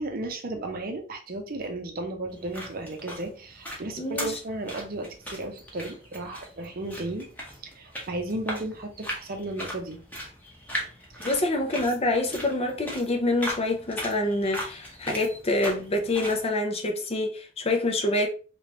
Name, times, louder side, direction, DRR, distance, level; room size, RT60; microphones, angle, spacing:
voice 1, 0.0-7.3 7.6-10.0 11.1-11.4, right 2 dB, 45° right, 0.7 m, -34 dB
sound 1, 2.3-16.4, equal, 10° left, 0.9 m, -39 dB
voice 2, 4.0-4.3 11.2-18.3, left 2 dB, 30° left, 0.6 m, -26 dB
3.2 x 3.0 x 2.9 m
head